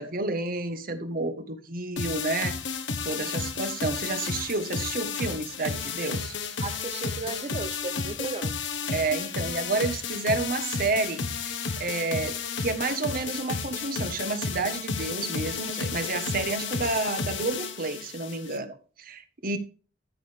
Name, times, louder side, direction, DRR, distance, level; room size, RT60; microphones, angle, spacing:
voice 1, 0.0-2.6 3.0-6.3 8.9-19.6, right 3 dB, 50° right, 1.3 m, -30 dB
sound 1, 2.0-18.6, left 5 dB, 80° left, 1.3 m, -32 dB
voice 2, 6.6-8.6, right 3 dB, 35° right, 0.5 m, -35 dB
13.5 x 6.5 x 3.5 m
head